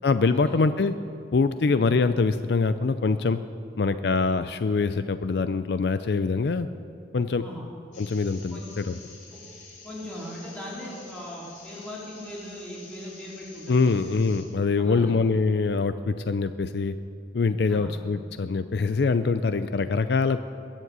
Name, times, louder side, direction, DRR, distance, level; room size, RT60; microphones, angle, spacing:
voice 1, 0.0-0.9 1.3-3.4 3.8-6.7 7.1-7.4 8.0-9.0 13.7-16.9 17.3-20.4, left 4 dB, 60° left, 11 dB, 0.4 m, -24 dB
sound 1, 7.9-14.4, left 4 dB, 45° left, 3.4 m, -48 dB
voice 2, 9.8-14.0 14.8-15.2 17.7-17.9, equal, 5° left, -7 dB, 4.0 m, -39 dB
22.0 x 7.4 x 8.0 m, 2.7 s
head